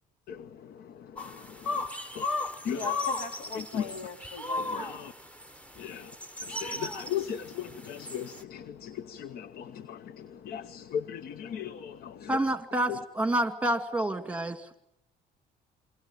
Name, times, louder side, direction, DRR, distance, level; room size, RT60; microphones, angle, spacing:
sound 1, 1.2-8.4, left 3 dB, 10° left, 1.4 m, -36 dB
voice 1, 2.7-5.0, left 4 dB, 90° left, 4.1 m, -40 dB
voice 2, 3.5-3.9 4.6-5.1 5.8-6.1 6.5-12.3, left 9 dB, 65° left, 1.0 m, -37 dB
voice 3, 12.3-14.6, right 1 dB, 10° right, 2.3 m, -28 dB
27.5 x 23.5 x 9.1 m
cardioid pair, 110°, 17 cm